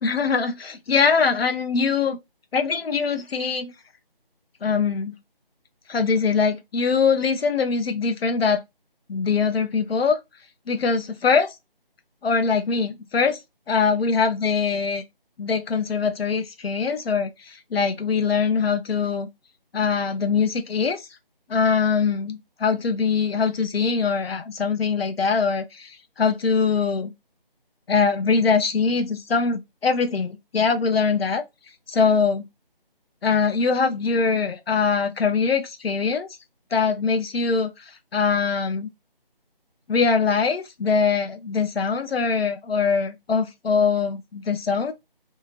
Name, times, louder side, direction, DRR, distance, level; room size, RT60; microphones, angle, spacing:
voice 1, 0.0-2.2 2.5-3.7 4.6-5.2 5.9-8.6 9.1-10.2 10.7-11.5 12.2-13.4 13.7-15.0 15.4-19.3 19.7-21.0 21.5-27.1 27.9-31.4 31.9-32.4 33.2-36.3 36.7-38.9 39.9-44.9, left 5 dB, 90° left, 0.6 m, -22 dB
2.8 x 2.4 x 2.7 m
figure-of-eight pair, 170°, 29 cm